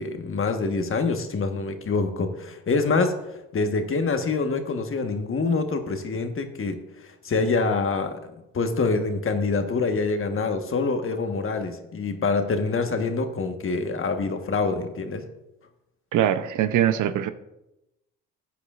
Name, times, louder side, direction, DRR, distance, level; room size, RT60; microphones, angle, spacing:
voice 1, 0.0-15.3, left 4 dB, 40° left, 6 dB, 1.3 m, -26 dB
voice 2, 16.1-17.3, right 10 dB, 65° right, 12 dB, 0.7 m, -22 dB
14.5 x 8.2 x 2.5 m, 0.92 s
supercardioid pair, 65°, 33 cm